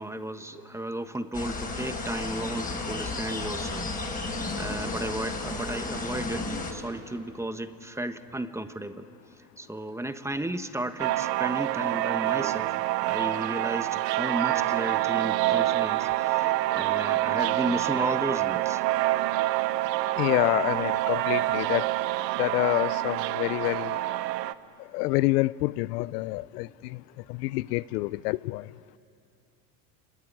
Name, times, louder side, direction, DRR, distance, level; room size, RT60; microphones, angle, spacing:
voice 1, 0.0-9.1 9.6-18.8, right 1 dB, 5° right, 9 dB, 1.3 m, -34 dB
sound 1, 1.3-6.7, left 3 dB, 15° left, 4.5 m, -33 dB
sound 2, 11.0-24.5, right 16 dB, 80° right, 0.9 m, -27 dB
voice 2, 20.2-21.9 22.4-24.0 24.9-27.0 27.3-28.6, left 20 dB, 70° left, 19 dB, 0.6 m, -27 dB
26.5 x 22.0 x 9.9 m, 2.7 s
supercardioid pair, 100°, 49 cm